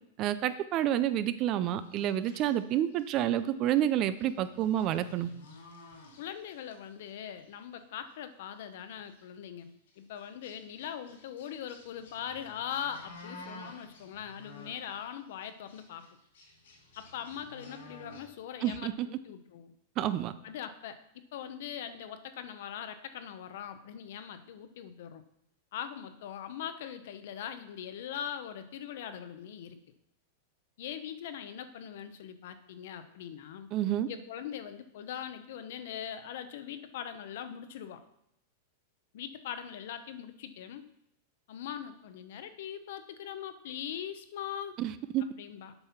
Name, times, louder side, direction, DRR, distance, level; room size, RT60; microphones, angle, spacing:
voice 1, 0.2-5.3 18.6-19.1 20.0-20.3 33.7-34.1 44.8-45.2, right 11 dB, 30° right, 13 dB, 0.4 m, -29 dB
sound 1, 1.8-3.2 3.7-3.9 4.2-6.7 7.0-7.5 8.1-8.2 8.6-8.7 9.0-9.2 9.9-15.1 15.4-18.3, left 2 dB, 85° left, 3.7 m, -52 dB
voice 2, 6.2-16.0 17.0-19.7 20.4-25.2 25.7-29.8 30.8-33.7 34.1-38.0 39.1-40.8 41.5-44.8 45.4-45.7, left 9 dB, 60° left, 10 dB, 0.8 m, -41 dB
7.9 x 5.5 x 5.8 m, 0.78 s
supercardioid pair, 165°, 0 cm